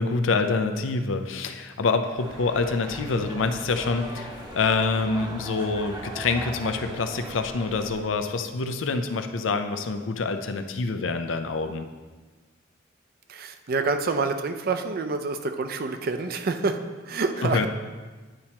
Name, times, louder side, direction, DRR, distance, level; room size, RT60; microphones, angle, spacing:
voice 1, 0.0-11.9 17.4-17.7, left 4 dB, 85° left, 7 dB, 0.5 m, -26 dB
sound 1, 2.2-8.0, right 1 dB, 20° right, 0.8 m, -39 dB
voice 2, 13.3-16.8 17.1-17.7, right 3 dB, 50° right, 8 dB, 0.4 m, -27 dB
10.0 x 4.3 x 2.9 m, 1.3 s
head